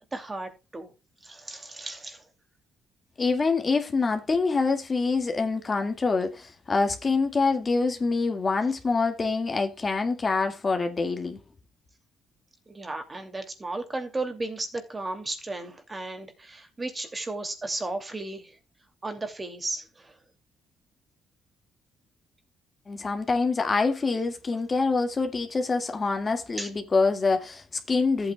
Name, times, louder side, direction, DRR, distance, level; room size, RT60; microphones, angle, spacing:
voice 1, 0.1-0.9 1.2-2.2 12.7-18.5 19.0-20.1 26.6-26.7, right 2 dB, 25° right, 2.6 m, -34 dB
voice 2, 3.2-11.4 22.9-28.3, left 4 dB, 35° left, 2.0 m, -25 dB
14.0 x 8.6 x 2.3 m
cardioid pair, 90°, 0 cm